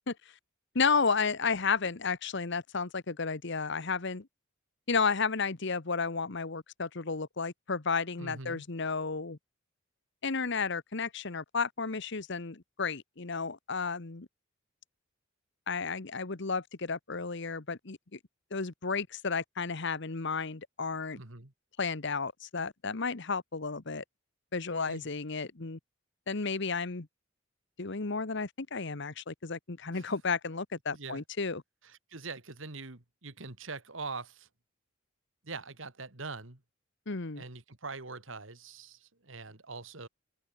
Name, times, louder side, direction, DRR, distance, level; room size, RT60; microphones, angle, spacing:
voice 1, 0.7-4.3 4.9-9.4 10.2-14.3 15.7-18.2 18.5-21.2 21.8-24.0 24.5-25.8 26.3-27.1 27.8-31.6 37.1-37.4, left 4 dB, 60° left, 1.2 m, -32 dB
voice 2, 8.2-8.6 21.2-21.5 24.9-25.1 29.9-30.1 30.9-31.2 31.8-34.5 35.4-36.6 37.3-40.1, right 3 dB, 70° right, 2.6 m, -43 dB
open air
head